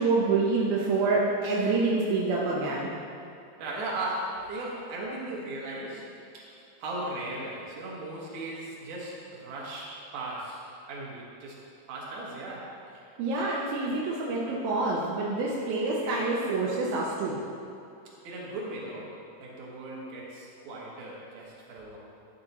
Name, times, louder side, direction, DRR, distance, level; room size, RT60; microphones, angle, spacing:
voice 1, 0.0-2.9 13.2-17.4, right 3 dB, 80° right, -4 dB, 2.1 m, -27 dB
voice 2, 3.6-6.1 6.3-10.6 10.9-11.6 11.9-12.7 18.2-19.1 19.4-22.0, right 2 dB, 60° right, -5 dB, 2.3 m, -37 dB
11.5 x 8.4 x 3.0 m, 2.8 s
omnidirectional pair, 5.3 m